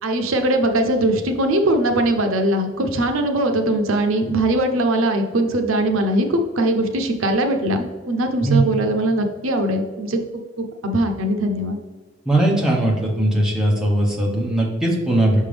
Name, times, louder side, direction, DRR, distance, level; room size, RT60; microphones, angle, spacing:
voice 1, 0.0-10.2 10.6-11.8, right 1 dB, 75° right, 5 dB, 0.7 m, -21 dB
voice 2, 12.3-15.4, right 1 dB, 5° right, -3 dB, 1.1 m, -19 dB
5.9 x 5.5 x 3.4 m, 1.3 s
head